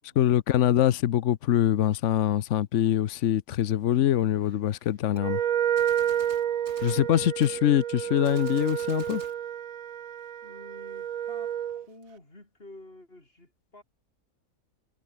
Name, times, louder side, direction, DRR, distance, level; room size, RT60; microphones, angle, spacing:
voice 1, 0.2-5.4 6.8-9.2, left 11 dB, 65° left, 1.0 m, -24 dB
Gunshot gunfire, 5.2-5.3 5.8-7.1 7.4-7.6 8.2-9.4, right 2 dB, 50° right, 5.7 m, -49 dB
Wind instrument woodwind instrument, 5.2-11.9, right 10 dB, 75° right, 1.3 m, -30 dB
voice 2, 5.8-6.3 10.4-13.8, left 1 dB, 45° left, 5.8 m, -51 dB
omnidirectional pair, 1.5 m